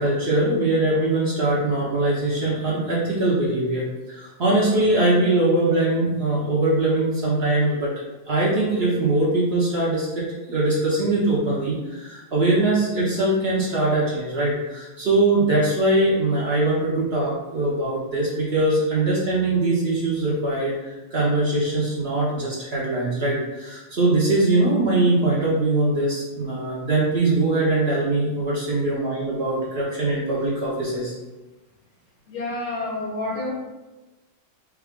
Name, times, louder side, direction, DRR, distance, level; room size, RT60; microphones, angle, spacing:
voice 1, 0.0-7.9 8.3-31.1, right 2 dB, 85° right, -6 dB, 0.5 m, -22 dB
voice 2, 32.3-33.5, left 2 dB, 65° left, -6 dB, 1.9 m, -29 dB
4.6 x 2.3 x 3.5 m, 1.1 s
omnidirectional pair, 2.1 m